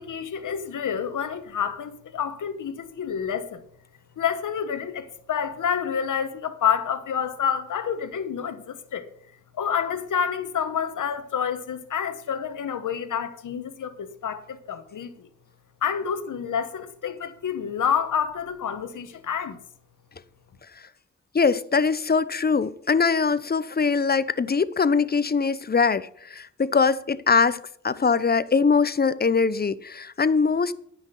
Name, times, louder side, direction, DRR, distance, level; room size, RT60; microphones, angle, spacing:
voice 1, 0.0-3.6 4.2-9.0 9.5-15.3 15.8-19.6, left 7 dB, 80° left, 1.2 m, -28 dB
voice 2, 21.3-30.7, left 5 dB, 30° left, 0.7 m, -22 dB
9.8 x 6.1 x 8.2 m
cardioid pair, 55°, 31 cm